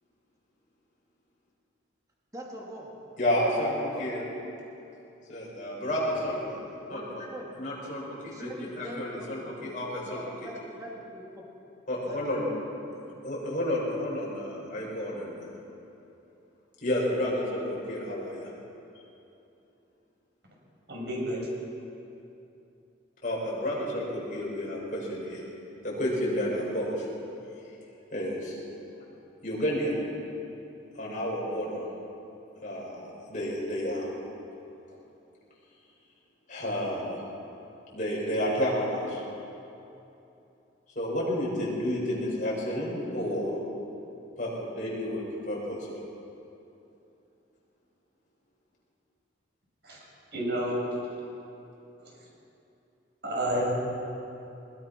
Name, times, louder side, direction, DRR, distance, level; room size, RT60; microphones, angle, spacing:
voice 1, 2.3-2.9 6.9-7.5 8.2-11.5 12.1-12.6 12.9-13.2, equal, 15° right, -3 dB, 2.7 m, -43 dB
voice 2, 3.2-4.2 5.3-6.6 6.9-7.2 7.6-10.2 11.9-12.5 13.2-15.5 16.8-18.5 23.2-25.4 25.8-27.1 28.1-28.5 29.4-30.0 31.0-31.8 32.6-34.1 36.5-37.2 37.9-39.2 41.0-43.6 44.4-45.8, equal, 40° left, -5 dB, 7.0 m, -31 dB
voice 3, 20.9-21.5 49.8-50.0 50.3-50.8 53.2-53.7, right 1 dB, 55° right, -3 dB, 6.7 m, -29 dB
22.0 x 20.5 x 6.1 m, 2.8 s
head